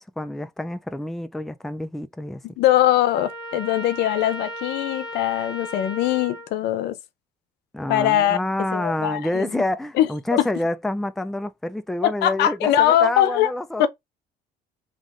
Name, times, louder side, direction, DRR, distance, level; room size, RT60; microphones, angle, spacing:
voice 1, 0.0-2.6 7.7-13.9, left 1 dB, ahead, 0.4 m, -28 dB
voice 2, 2.4-7.0 7.9-8.4 8.7-9.6 10.0-10.4 12.0-13.5 13.8-13.9, left 12 dB, 80° left, 0.8 m, -21 dB
Trumpet, 3.1-6.5, equal, 20° left, 1.2 m, -35 dB
3.7 x 3.0 x 3.7 m
cardioid pair, 110°, 17 cm